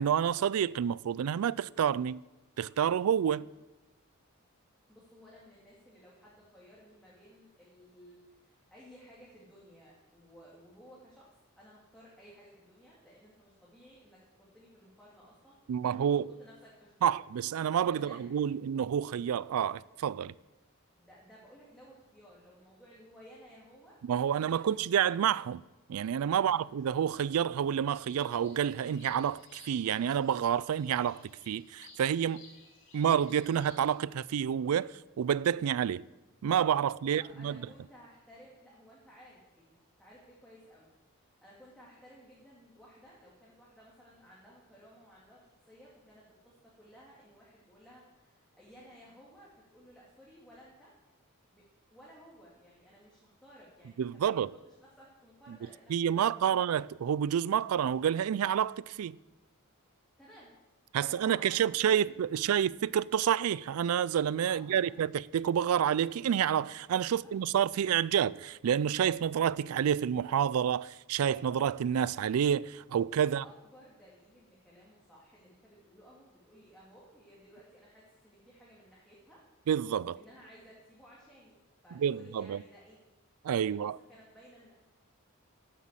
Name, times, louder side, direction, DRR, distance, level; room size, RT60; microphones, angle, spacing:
voice 1, 0.0-2.2 2.6-3.5 15.7-16.3 17.0-20.3 24.0-25.6 25.9-32.4 32.9-36.0 36.4-37.6 54.0-54.5 55.9-59.2 60.9-73.4 79.7-80.2 82.0-82.6 83.4-84.0, right 8 dB, 85° right, 0.3 m, -29 dB
voice 2, 4.9-14.2 14.5-15.6 16.0-16.1 16.4-17.2 17.9-18.2 21.0-24.0 24.3-25.0 26.3-26.6 37.0-40.9 41.4-50.9 51.5-51.6 51.9-56.6 60.2-60.5 61.0-62.1 64.5-64.9 67.0-67.3 73.2-79.4 80.1-83.0 83.6-84.7, equal, 5° left, 2.3 m, -57 dB
sound 1, 27.9-33.9, left 3 dB, 60° left, 2.9 m, -58 dB
11.5 x 8.2 x 7.3 m
head